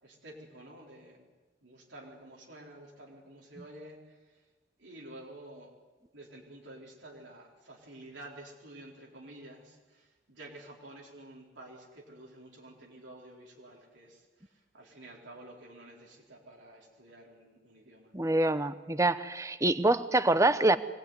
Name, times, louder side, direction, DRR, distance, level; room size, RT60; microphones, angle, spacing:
voice 1, 0.0-1.3 1.6-4.5 4.8-5.7 6.1-18.1, right 1 dB, 80° right, -1 dB, 4.5 m, -50 dB
voice 2, 18.1-20.8, right 2 dB, 15° right, 13 dB, 0.8 m, -25 dB
24.0 x 19.0 x 9.6 m, 1.3 s
head